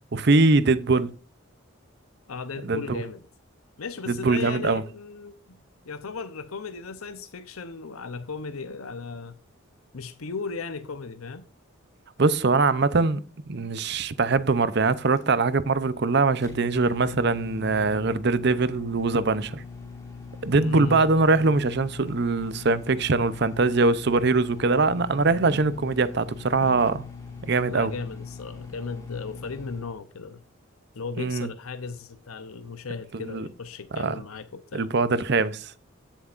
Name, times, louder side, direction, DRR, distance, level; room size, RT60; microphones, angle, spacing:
voice 1, 0.1-1.1 2.6-3.0 4.1-4.8 12.2-13.2 13.5-19.6 20.4-27.0 27.5-27.9 31.2-31.5 33.1-33.5 33.9-34.1 34.7-35.7, right 3 dB, 50° right, 0.6 m, -22 dB
voice 2, 2.3-3.3 3.8-5.6 5.8-9.4 9.9-11.5 20.5-21.1 26.6-26.9 27.7-30.4 30.9-34.9, left 4 dB, 90° left, 0.8 m, -36 dB
Microwave oven, 14.9-29.9, left 4 dB, 15° left, 3.0 m, -41 dB
16.0 x 7.3 x 2.5 m
head